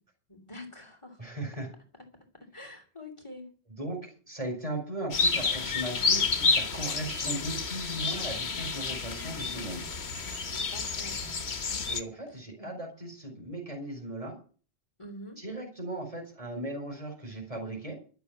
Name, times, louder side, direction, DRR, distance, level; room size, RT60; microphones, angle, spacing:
voice 1, 0.3-1.2 1.9-3.5 10.5-11.4 12.3-12.8 15.0-15.4, left 1 dB, 30° left, 3 dB, 2.8 m, -47 dB
voice 2, 1.2-1.7 3.7-9.9 11.9-14.4 15.4-18.0, right 1 dB, 30° right, 2 dB, 4.4 m, -37 dB
sound 1, 5.1-12.0, left 4 dB, 80° left, 1.6 m, -30 dB
12.0 x 7.0 x 8.8 m, 0.40 s
omnidirectional pair, 1.1 m